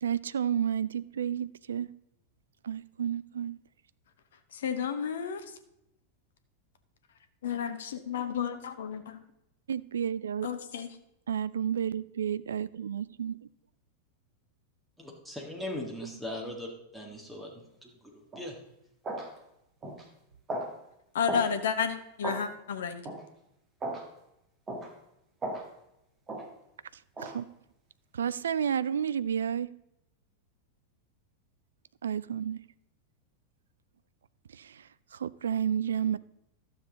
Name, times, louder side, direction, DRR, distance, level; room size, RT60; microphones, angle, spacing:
voice 1, 0.0-1.9 2.6-3.6 9.7-10.5 11.3-13.3 26.9-27.5 28.1-29.7 32.0-32.6 34.5-36.2, right 8 dB, 65° right, 0.3 m, -31 dB
voice 2, 4.5-5.4 7.4-9.2 10.4-10.9 21.1-23.1, left 7 dB, 60° left, 0.8 m, -32 dB
voice 3, 15.0-18.6, left 1 dB, 5° right, 1.8 m, -40 dB
sound 1, 18.3-18.5 19.0-19.3 19.8-20.0 20.5-20.7 21.3-21.5 22.2-22.4 23.0-23.2 23.8-24.1 24.7-24.9 25.4-25.7 26.3-26.5 27.2-27.4, right 1 dB, 20° right, 2.1 m, -35 dB
12.5 x 7.0 x 3.9 m
figure-of-eight pair, 90°, 0 cm